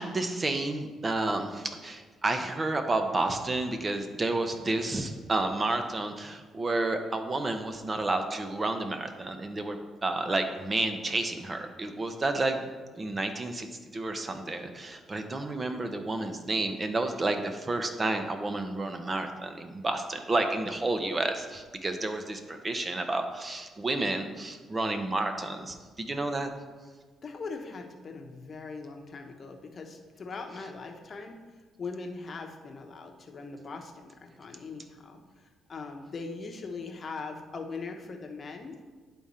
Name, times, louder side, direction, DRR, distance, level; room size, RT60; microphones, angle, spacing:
voice 1, 0.0-9.8 10.0-12.6 12.9-13.7 13.9-26.5, right 2 dB, 30° right, 6 dB, 0.7 m, -30 dB
voice 2, 27.2-31.3 31.8-38.8, left 4 dB, 45° left, 3 dB, 0.9 m, -41 dB
10.5 x 3.7 x 4.2 m, 1.4 s
cardioid pair, 90°, 0 cm